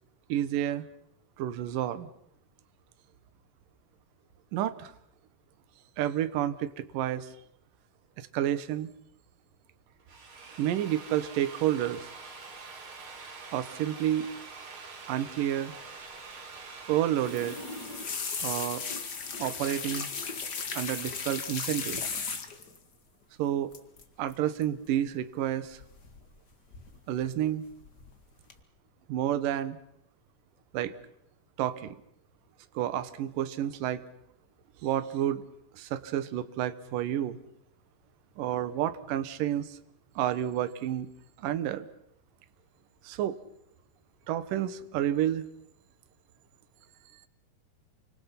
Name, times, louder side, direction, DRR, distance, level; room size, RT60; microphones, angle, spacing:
voice 1, 0.3-0.8 1.4-2.1 4.5-4.9 6.0-7.3 8.2-8.9 10.6-12.1 13.5-14.3 15.1-15.7 16.9-17.6 18.4-18.8 19.4-20.1 20.7-22.0 23.4-23.7 24.2-25.8 27.1-27.6 29.1-29.8 30.7-30.9 31.6-32.0 32.7-34.0 34.8-35.4 35.8-37.4 38.4-39.8 40.2-41.1 41.4-41.9 43.0-43.4 44.3-45.4, right 11 dB, 65° right, 12 dB, 2.6 m, -30 dB
Drill, 9.9-19.7, right 4 dB, 35° right, 2.9 m, -46 dB
sound 1, 17.2-22.8 23.7-24.0 24.3-24.6 25.8-26.4 26.7-27.3 27.7-28.1 28.5-28.6, left 5 dB, 50° left, 1.2 m, -36 dB
29.0 x 25.5 x 5.9 m, 0.75 s
omnidirectional pair, 4.8 m